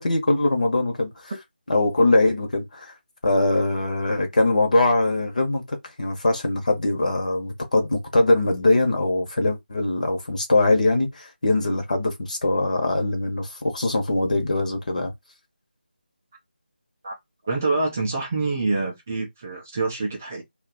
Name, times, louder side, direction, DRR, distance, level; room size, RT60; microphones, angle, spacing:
voice 1, 0.0-1.3 1.7-2.9 3.2-15.1, left 2 dB, 45° left, 1.1 m, -22 dB
voice 2, 17.4-20.4, right 3 dB, 15° right, 0.4 m, -26 dB
2.6 x 2.4 x 3.8 m
figure-of-eight pair, 175°, 6 cm